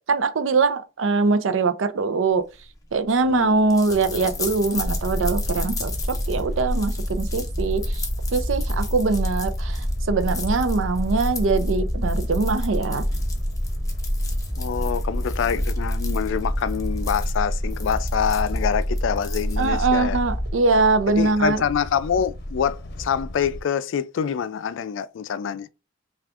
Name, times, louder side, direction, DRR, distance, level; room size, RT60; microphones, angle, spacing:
voice 1, 0.1-2.4 2.9-8.0 8.3-13.0 19.6-21.6, right 4 dB, 85° right, 0.5 m, -22 dB
sound 1, 2.5-19.9, left 4 dB, 20° left, 0.7 m, -38 dB
voice 2, 3.3-3.6 14.6-20.2 21.2-25.7, left 7 dB, 75° left, 0.3 m, -26 dB
sound 2, 3.9-23.6, left 1 dB, 55° left, 0.7 m, -36 dB
sound 3, 4.8-20.5, equal, 5° right, 2.3 m, -27 dB
5.9 x 2.4 x 2.4 m
head